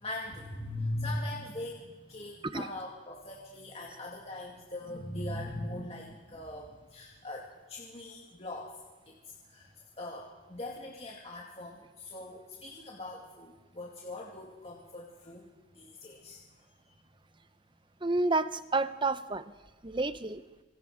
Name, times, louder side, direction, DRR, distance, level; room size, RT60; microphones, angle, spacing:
voice 1, 0.0-8.7 9.1-9.2 9.4-9.7 10.0-15.5 15.7-16.4, left 1 dB, 30° left, -3 dB, 2.5 m, -40 dB
voice 2, 18.0-19.5 19.8-20.4, right 3 dB, 25° right, 13 dB, 0.8 m, -29 dB
26.0 x 24.0 x 5.1 m, 1.2 s
head